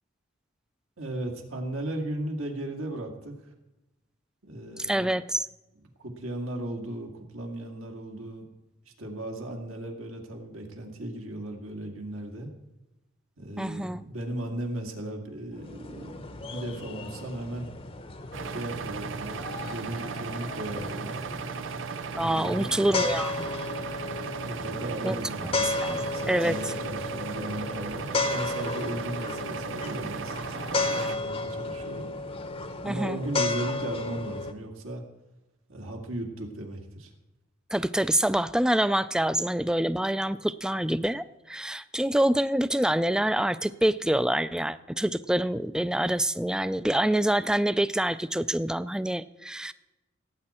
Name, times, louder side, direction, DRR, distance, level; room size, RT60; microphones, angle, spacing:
voice 1, 1.0-3.5 4.4-5.1 6.0-8.4 9.0-12.5 13.4-17.7 18.4-21.2 22.2-22.9 24.4-32.1 32.8-35.0 35.7-37.1, right 1 dB, 85° right, 2 dB, 2.2 m, -36 dB
voice 2, 4.9-5.5 13.6-14.0 22.2-23.5 25.0-25.2 25.6-26.0 26.3-26.6 32.8-33.2 37.7-49.7, right 1 dB, 5° right, 14 dB, 0.3 m, -26 dB
sound 1, 15.5-34.5, left 2 dB, 30° left, 0.7 m, -34 dB
sound 2, 18.3-31.2, right 5 dB, 65° right, 0.6 m, -36 dB
18.0 x 8.7 x 4.3 m, 1.0 s
head